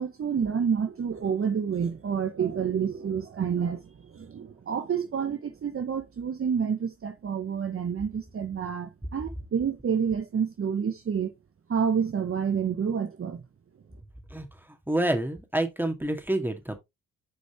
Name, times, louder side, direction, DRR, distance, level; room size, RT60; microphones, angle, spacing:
voice 1, 0.0-11.3 11.7-13.4, right 7 dB, 40° right, 0.9 m, -29 dB
voice 2, 14.3-16.8, right 1 dB, 5° right, 2.1 m, -28 dB
7.0 x 5.2 x 3.0 m
hypercardioid pair, 45°, 35 cm